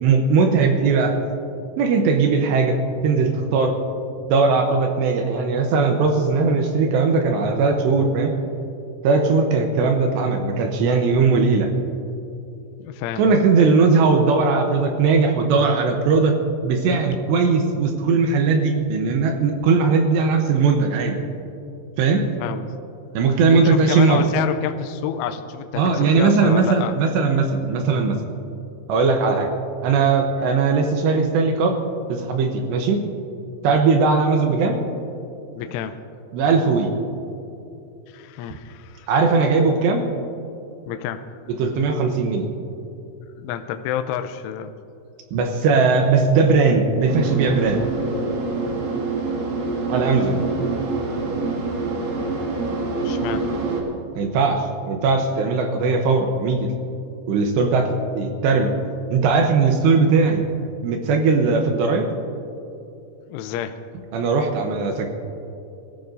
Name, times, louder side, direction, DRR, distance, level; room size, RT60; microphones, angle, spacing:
voice 1, 0.0-1.1 1.8-3.8 4.3-8.3 9.0-11.7 13.2-16.3 16.6-21.2 22.0-22.3 23.1-24.2 25.8-28.2 28.9-29.5 29.8-31.8 32.1-33.0 33.6-34.8 36.3-36.9 39.1-40.1 41.6-42.5 45.3-47.8 49.9-50.5 54.2-56.7 57.3-57.9 58.2-58.7 59.1-60.4 60.8-62.1 64.1-65.1, right 4 dB, 75° right, 3 dB, 2.8 m, -19 dB
voice 2, 12.8-13.7 22.4-22.7 23.5-26.9 30.4-30.5 33.7-33.8 35.5-36.0 38.1-39.1 40.9-41.3 43.4-44.7 53.0-53.5 63.3-63.8, left 9 dB, 85° left, 7 dB, 3.1 m, -29 dB
sound 1, 47.1-53.8, right 3 dB, 55° right, 2.9 m, -26 dB
23.5 x 15.5 x 2.7 m, 2.8 s
omnidirectional pair, 5.6 m